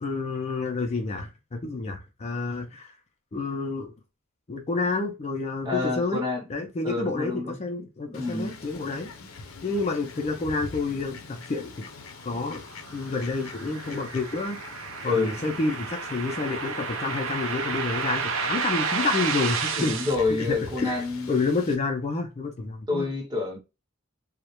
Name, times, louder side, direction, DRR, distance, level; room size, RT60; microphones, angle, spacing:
voice 1, 0.0-2.9 3.3-3.9 4.5-6.2 6.5-9.1 9.6-11.8 12.2-12.6 12.9-19.9 20.4-23.1, left 3 dB, 30° left, 0.4 m, -29 dB
voice 2, 5.6-6.4 6.8-7.6 8.1-8.6 15.0-15.3 19.8-21.3 22.9-23.6, left 3 dB, 20° right, 0.7 m, -28 dB
Fowl, 8.1-21.7, left 4 dB, 85° left, 0.5 m, -44 dB
sound 1, 12.3-20.1, right 5 dB, 70° right, 0.4 m, -31 dB
2.2 x 2.0 x 2.8 m
head